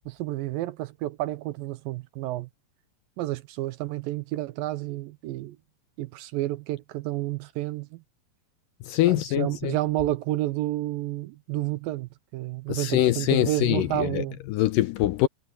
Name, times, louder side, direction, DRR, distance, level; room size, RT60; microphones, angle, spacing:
voice 1, 0.1-2.5 3.2-5.6 6.0-8.0 9.1-14.4, right 16 dB, 80° right, 2.2 m, -30 dB
voice 2, 8.9-9.7 12.7-14.2 14.5-15.3, left 14 dB, 80° left, 2.1 m, -23 dB
omnidirectional pair, 4.4 m